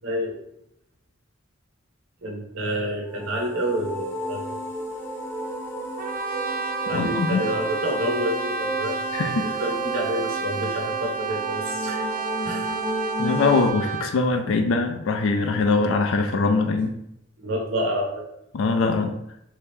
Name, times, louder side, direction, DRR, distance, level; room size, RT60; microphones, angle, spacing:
voice 1, 0.0-0.4 2.2-4.6 6.9-12.0 12.4-12.7 17.4-18.2, equal, 80° right, -1 dB, 0.7 m, -29 dB
sound 1, 3.1-13.7, equal, 10° left, 0.6 m, -32 dB
Brass instrument, 6.0-14.2, right 6 dB, 45° right, 0.3 m, -30 dB
voice 2, 6.9-7.4 9.1-9.5 13.2-16.9 18.5-19.1, left 3 dB, 70° left, 5 dB, 0.4 m, -22 dB
3.2 x 2.8 x 3.4 m, 0.79 s
head